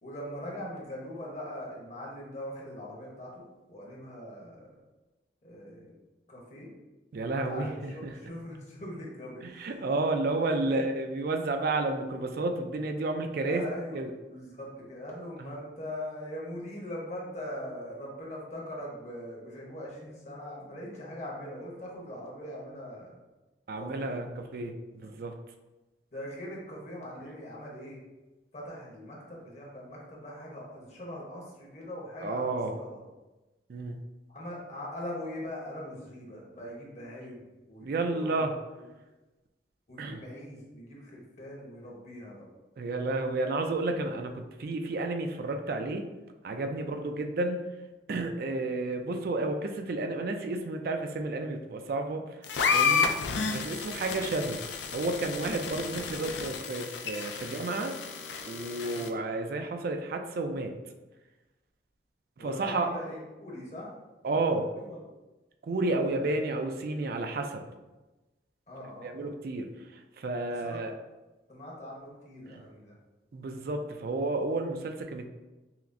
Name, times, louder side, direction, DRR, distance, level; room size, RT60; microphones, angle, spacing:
voice 1, 0.0-4.7 5.4-5.9 6.3-6.7 7.4-9.8 10.6-10.9 13.4-14.0 14.3-23.2 23.8-24.2 25.0-25.1 26.1-28.0 28.5-33.0 34.3-38.4 39.9-42.4 46.7-47.0 56.2-56.3 57.4-57.5 58.8-59.0 62.4-63.9 64.2-65.0 66.1-66.4 68.7-69.3 70.6-70.8 71.5-72.9, equal, 40° left, -4 dB, 0.9 m, -41 dB
voice 2, 7.1-8.1 9.4-13.6 13.9-14.1 15.4-15.5 23.7-25.3 32.2-32.8 33.7-34.0 37.8-38.5 40.0-40.2 42.8-46.1 46.4-47.6 48.1-53.1 53.5-54.6 54.9-57.9 58.5-60.7 62.4-62.9 64.2-64.7 65.6-67.6 69.0-69.7 70.2-70.9 72.5-72.6 73.3-75.3, right 2 dB, 55° right, 5 dB, 0.3 m, -31 dB
sound 1, 52.4-59.1, left 5 dB, 75° left, 0.4 m, -31 dB
5.7 x 2.0 x 2.5 m, 1.1 s
head